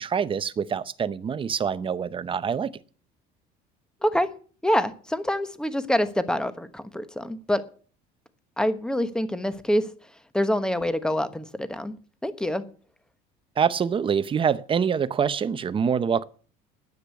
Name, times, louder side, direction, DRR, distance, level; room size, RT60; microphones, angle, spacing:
voice 1, 0.0-2.7 13.6-16.2, right 7 dB, 25° right, 0.7 m, -25 dB
voice 2, 4.6-7.6 8.6-9.9 10.3-12.0 12.2-12.6, equal, 5° left, 1.1 m, -26 dB
10.0 x 8.1 x 8.3 m
cardioid pair, 115°, 20 cm